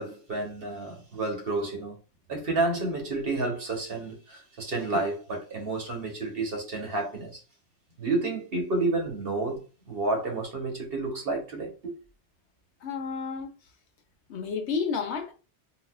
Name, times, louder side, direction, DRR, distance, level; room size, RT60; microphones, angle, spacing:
voice 1, 0.0-2.0 2.3-7.4 8.0-11.9, right 2 dB, 55° right, 1.3 m, -30 dB
voice 2, 12.8-13.5 14.3-15.3, left 5 dB, 75° left, 1.0 m, -31 dB
4.0 x 2.4 x 2.3 m
omnidirectional pair, 1.2 m